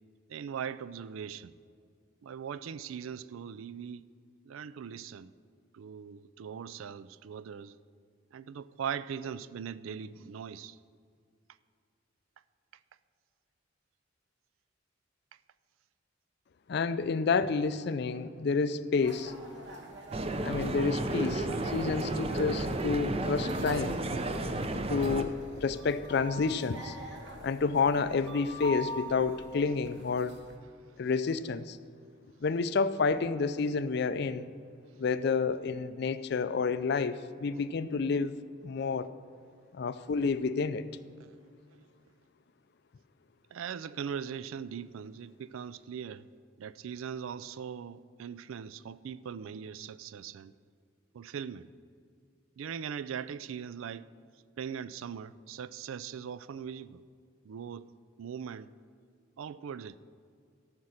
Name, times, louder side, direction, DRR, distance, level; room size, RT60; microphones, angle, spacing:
voice 1, 0.3-1.5 2.2-4.1 4.5-5.3 5.7-7.7 8.3-10.7 43.5-46.3 46.6-50.5 51.1-51.7 52.6-54.1 54.6-57.0 57.5-57.9 58.2-58.7 59.4-60.0, right 7 dB, 85° right, 0.4 m, -40 dB
voice 2, 16.7-19.3 20.4-24.0 24.9-27.0 27.4-30.4 31.0-31.8 32.4-34.5 35.0-38.4 38.6-39.1 39.7-40.8, left 4 dB, 55° left, 0.4 m, -29 dB
sound 1, 19.0-30.6, equal, 60° right, 1.3 m, -43 dB
sound 2, 20.1-25.2, right 2 dB, 30° right, 0.5 m, -32 dB
13.5 x 5.8 x 6.4 m
head